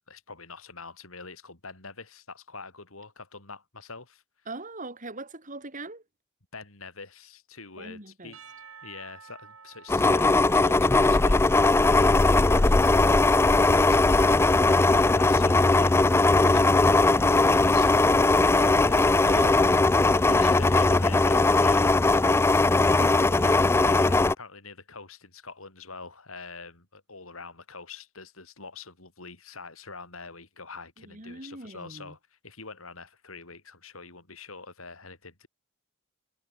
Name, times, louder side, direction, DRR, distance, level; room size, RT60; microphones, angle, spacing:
voice 1, 0.1-4.2 6.5-8.4 8.8-12.7 13.4-16.0 16.4-19.1 19.5-19.7 20.4-23.0 23.3-35.5, left 4 dB, 85° left, 5.9 m, -44 dB
voice 2, 4.5-6.0 7.8-8.3 12.1-13.3 18.3-19.6 23.0-23.5 31.0-32.2, right 2 dB, 40° right, 5.1 m, -41 dB
Percussion / Church bell, 8.3-12.5, right 6 dB, 85° right, 7.9 m, -52 dB
sound 1, 9.9-24.3, left 2 dB, 10° left, 0.3 m, -20 dB
head